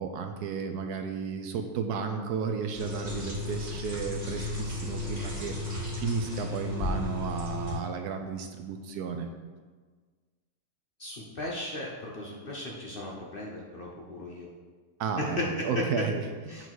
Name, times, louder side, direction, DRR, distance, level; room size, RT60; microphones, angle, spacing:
voice 1, 0.0-9.3 15.0-16.7, right 5 dB, 75° right, 5 dB, 1.1 m, -33 dB
sound 1, 2.7-7.7, left 2 dB, 30° right, 2.6 m, -34 dB
voice 2, 11.0-14.5 15.2-15.9 16.5-16.7, left 1 dB, 45° left, -3 dB, 0.8 m, -36 dB
8.3 x 3.9 x 4.6 m, 1.5 s
omnidirectional pair, 1.8 m